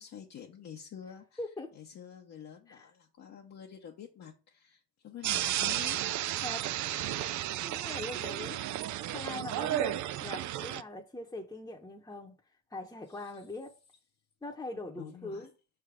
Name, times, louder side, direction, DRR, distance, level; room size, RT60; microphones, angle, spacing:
voice 1, 0.0-1.4 1.7-6.0 13.1-13.3 15.0-15.5, left 9 dB, 60° left, 0.9 m, -48 dB
voice 2, 1.4-1.7 2.7-2.9 6.4-6.7 7.6-8.6 9.1-12.4 12.7-13.7 14.4-15.5, left 2 dB, 10° left, 0.9 m, -41 dB
sound 1, 5.2-10.8, right 12 dB, 75° right, 0.5 m, -33 dB
5.7 x 3.5 x 5.0 m
cardioid pair, 90°, 30 cm